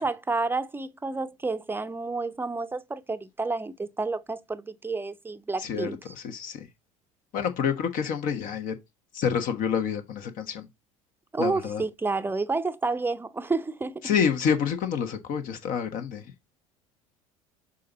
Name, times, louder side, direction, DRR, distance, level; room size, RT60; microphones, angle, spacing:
voice 1, 0.0-6.1 11.3-14.2, right 3 dB, 10° right, 0.7 m, -30 dB
voice 2, 5.6-6.7 7.3-8.7 9.1-10.7 11.4-11.8 14.0-16.3, left 7 dB, 50° left, 1.3 m, -28 dB
6.5 x 4.1 x 3.9 m
hypercardioid pair, 70°, 18 cm